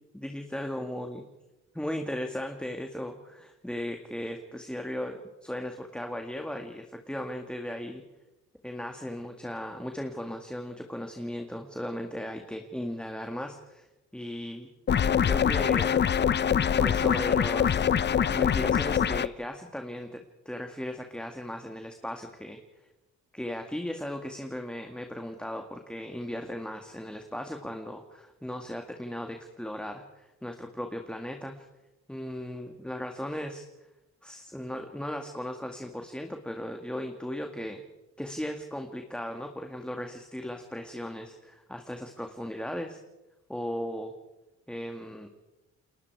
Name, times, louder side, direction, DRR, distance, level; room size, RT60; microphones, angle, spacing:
voice 1, 0.1-1.2 1.7-8.0 8.6-13.9 14.1-14.7 15.2-15.9 16.8-17.8 18.2-22.6 23.3-31.7 32.1-33.6 34.2-37.8 38.2-43.0 43.5-44.1 44.7-45.3, left 1 dB, 5° left, 4 dB, 2.1 m, -37 dB
sound 1, 14.9-19.3, left 8 dB, 35° left, 0.7 m, -24 dB
30.0 x 21.5 x 4.8 m, 1.0 s
cardioid pair, 90°, 30 cm